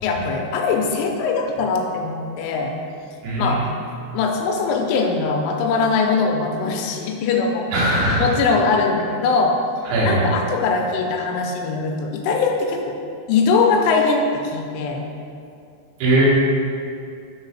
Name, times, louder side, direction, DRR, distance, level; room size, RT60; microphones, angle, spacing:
voice 1, 0.0-2.7 3.4-3.6 4.1-7.7 8.2-9.5 10.0-12.9 13.3-15.0, left 4 dB, 90° left, 2 dB, 2.8 m, -21 dB
voice 2, 3.2-3.7 7.7-8.4 9.9-10.3 16.0-16.3, right 1 dB, 70° right, -6 dB, 3.2 m, -19 dB
6.5 x 3.9 x 5.7 m, 2.5 s
omnidirectional pair, 4.9 m